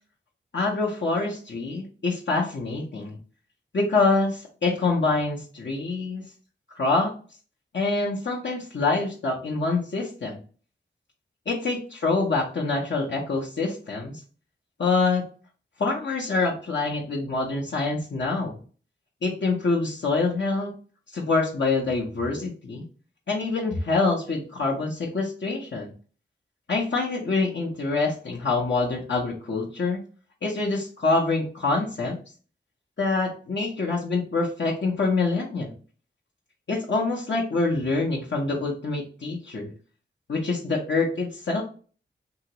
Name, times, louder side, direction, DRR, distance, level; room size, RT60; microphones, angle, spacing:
voice 1, 0.5-3.2 3.7-6.2 6.8-7.1 7.7-10.4 11.5-14.2 14.8-15.2 15.8-18.6 19.2-20.7 21.1-22.8 23.3-25.9 26.7-30.0 30.4-32.2 33.0-35.7 36.7-39.7 40.3-41.6, left 3 dB, 65° left, -4 dB, 0.8 m, -25 dB
2.9 x 2.8 x 2.8 m, 0.40 s
wide cardioid pair, 70°, 20 cm